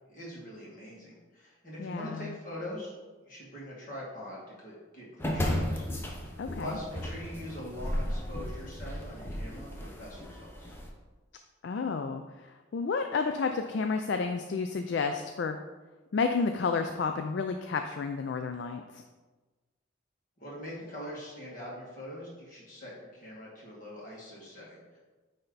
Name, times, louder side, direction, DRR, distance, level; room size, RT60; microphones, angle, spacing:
voice 1, 0.1-2.9 3.3-5.9 6.2-6.3 6.6-10.7 20.4-25.0, left 1 dB, 40° left, -5 dB, 2.1 m, -43 dB
voice 2, 1.8-2.3 6.4-6.8 11.6-15.6 16.1-19.0, left 4 dB, 60° left, 6 dB, 0.3 m, -31 dB
sound 1, 5.2-10.9, left 1 dB, 10° left, 0.7 m, -34 dB
9.5 x 3.4 x 4.0 m, 1.3 s
head